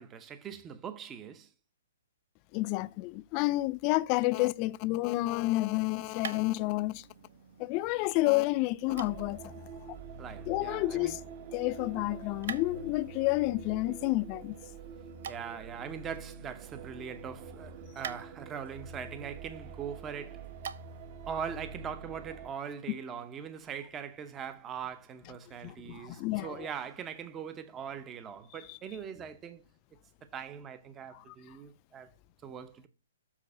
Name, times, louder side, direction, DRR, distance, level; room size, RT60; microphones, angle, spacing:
voice 1, 0.0-1.5 10.2-11.2 15.3-20.5 21.3-29.6 30.3-32.1 32.4-32.9, right 7 dB, 20° right, 0.7 m, -41 dB
voice 2, 2.5-7.0 7.6-9.5 10.5-11.2 11.5-14.6 25.6-26.7, left 20 dB, 35° left, 0.4 m, -30 dB
sound 1, 5.5-21.2, right 8 dB, 60° right, 0.8 m, -49 dB
sound 2, 8.9-22.5, right 5 dB, 40° right, 1.0 m, -46 dB
7.4 x 4.0 x 6.7 m
hypercardioid pair, 140°, 0 cm